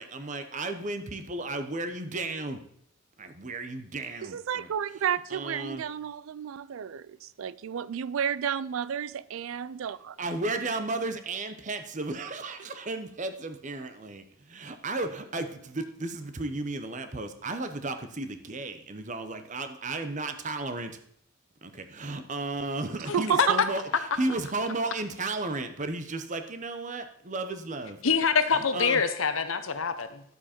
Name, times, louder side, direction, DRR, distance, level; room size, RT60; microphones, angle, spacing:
voice 1, 0.0-2.6 3.2-4.7 5.3-5.8 10.2-21.0 21.6-23.8 24.2-28.0 28.5-29.0, right 2 dB, 35° right, 0.8 m, -34 dB
voice 2, 4.2-10.2 22.9-23.6, right 8 dB, 75° right, 0.4 m, -31 dB
voice 3, 23.1-23.5 28.0-30.2, left 5 dB, 70° left, 0.9 m, -25 dB
11.0 x 7.4 x 4.4 m
head